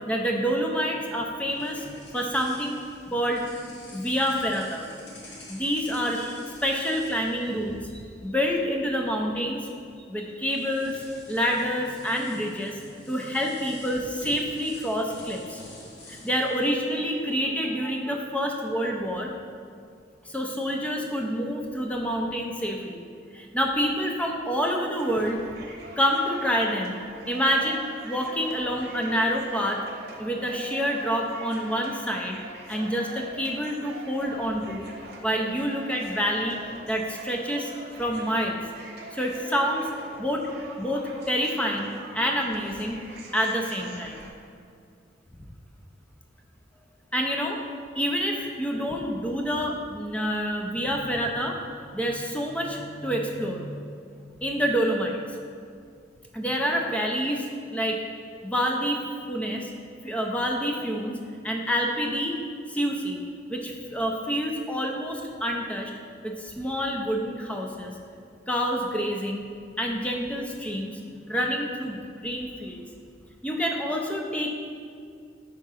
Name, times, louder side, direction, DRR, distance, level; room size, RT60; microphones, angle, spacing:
voice 1, 0.1-3.4 3.9-4.9 5.5-9.6 10.1-10.9 11.3-15.6 16.1-19.3 20.3-23.0 23.3-25.4 26.0-27.0 27.3-29.8 30.2-32.4 32.7-34.9 35.2-36.6 36.9-37.7 38.0-38.6 39.1-39.9 40.2-40.5 40.8-43.0 43.3-44.3 47.1-47.6 48.0-51.6 51.9-53.7 54.2-55.2 56.3-58.0 58.4-59.0 59.3-59.7 60.0-61.2 61.4-62.4 62.7-63.2 63.5-65.9 66.2-67.9 68.5-69.5 69.8-71.0 71.3-72.8 73.4-74.5, equal, 5° left, 1 dB, 0.5 m, -27 dB
sound 1, 1.0-8.3 8.5-8.8 9.9-10.0 10.4-17.6, left 1 dB, 70° left, 1.1 m, -48 dB
sound 2, 25.0-44.3, right 2 dB, 60° right, 0.9 m, -43 dB
4.9 x 3.7 x 5.6 m, 2.3 s
head